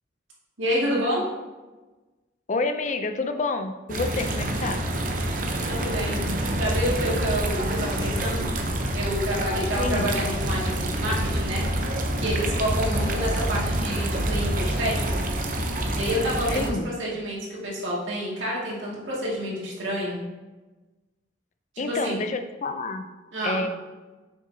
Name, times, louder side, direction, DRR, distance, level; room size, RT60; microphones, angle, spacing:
voice 1, 0.6-1.3 5.6-6.2 6.6-8.5 8.9-11.6 12.2-15.2 15.9-20.2 21.7-22.2 23.3-23.7, equal, 85° right, -5 dB, 2.1 m, -28 dB
voice 2, 2.5-4.8 9.7-10.1 16.5-16.9 21.8-23.1 23.4-23.7, left 3 dB, 40° left, 7 dB, 0.5 m, -28 dB
sound 1, 3.9-16.7, right 1 dB, 45° right, 0.7 m, -27 dB
7.6 x 6.2 x 2.8 m, 1.2 s
head